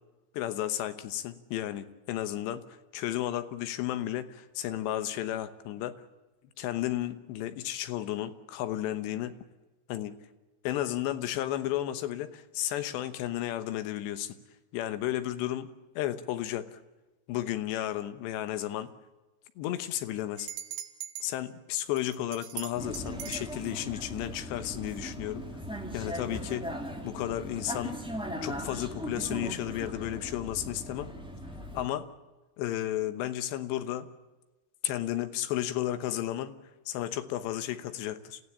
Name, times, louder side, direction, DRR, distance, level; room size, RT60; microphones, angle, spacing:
voice 1, 0.3-2.6 2.9-6.0 6.6-9.4 9.9-10.2 10.6-14.4 14.7-16.8 17.3-18.9 19.6-20.5 21.2-25.5 25.9-26.7 27.0-28.0 28.4-31.1 31.7-32.1 32.6-34.1 34.8-36.6 36.9-38.4, left 13 dB, 80° left, 11 dB, 3.3 m, -33 dB
sound 1, 20.4-21.3 22.0-23.5, right 10 dB, 85° right, 3.9 m, -40 dB
Vehicle, 22.7-31.9, equal, 5° right, 1.0 m, -39 dB
28.5 x 15.5 x 8.6 m, 1.1 s
omnidirectional pair, 5.1 m